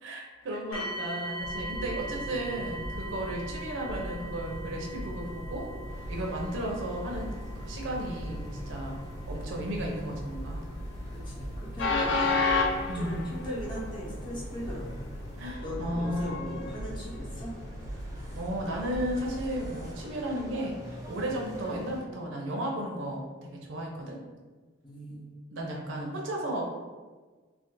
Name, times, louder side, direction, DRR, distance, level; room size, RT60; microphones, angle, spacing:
voice 1, 0.0-5.7 6.1-9.0 9.3-10.6 12.9-13.3 15.4-16.5 18.3-24.2 25.5-26.6, right 1 dB, 75° right, -1 dB, 0.6 m, -34 dB
sound 1, 0.7-13.6 14.4-14.5 15.1-15.2, right 1 dB, 80° left, 0.9 m, -42 dB
Train, 1.4-19.9, left 2 dB, 65° left, 0.4 m, -35 dB
voice 2, 1.8-2.4 11.2-12.4 12.9-14.9 15.6-17.5 24.8-25.4, equal, 25° left, -6 dB, 0.8 m, -39 dB
sound 2, 5.9-22.0, equal, 20° right, 0.6 m, -48 dB
2.5 x 2.4 x 3.7 m, 1.4 s
head